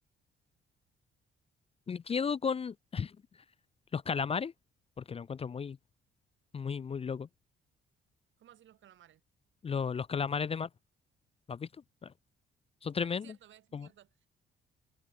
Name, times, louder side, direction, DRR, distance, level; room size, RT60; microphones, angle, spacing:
voice 1, 1.9-3.1 3.9-4.5 5.0-5.8 6.5-7.3 9.6-10.7 11.5-11.7 12.0-12.1 12.8-13.3 13.7-13.9, left 6 dB, 30° left, 0.5 m, -34 dB
voice 2, 8.4-9.2 13.0-14.3, right 11 dB, 75° right, 6.4 m, -59 dB
cardioid pair, 90°, 20 cm